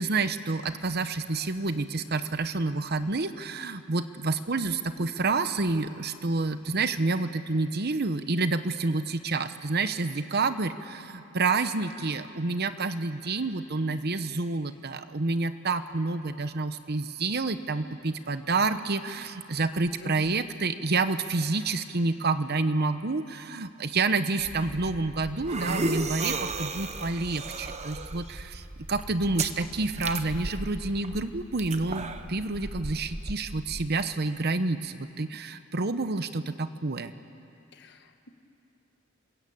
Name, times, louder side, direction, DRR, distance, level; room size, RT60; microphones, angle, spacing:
voice 1, 0.0-37.1, right 3 dB, 50° right, 11 dB, 1.0 m, -29 dB
sound 1, 24.4-33.9, right 3 dB, 35° right, 1.1 m, -35 dB
voice 2, 37.7-38.3, left 1 dB, 55° left, 6 dB, 1.6 m, -45 dB
26.5 x 21.5 x 8.7 m, 2.7 s
head